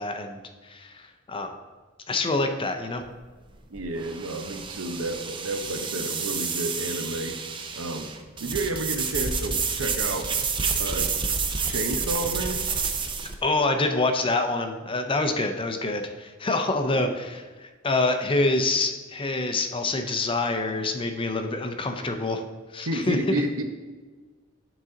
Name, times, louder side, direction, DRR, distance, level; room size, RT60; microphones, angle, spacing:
voice 1, 0.0-1.5 2.1-3.0 13.4-22.4 22.7-23.4, left 2 dB, 25° left, 6 dB, 0.5 m, -26 dB
sound 1, 3.0-13.3, right 5 dB, 25° right, 0.5 m, -29 dB
voice 2, 3.7-7.4 7.7-8.1 8.4-10.3 10.8-11.1 11.6-12.6 16.8-17.2 22.8-23.6, right 1 dB, 85° right, 6 dB, 0.8 m, -31 dB
9.1 x 4.0 x 3.8 m, 1.3 s
head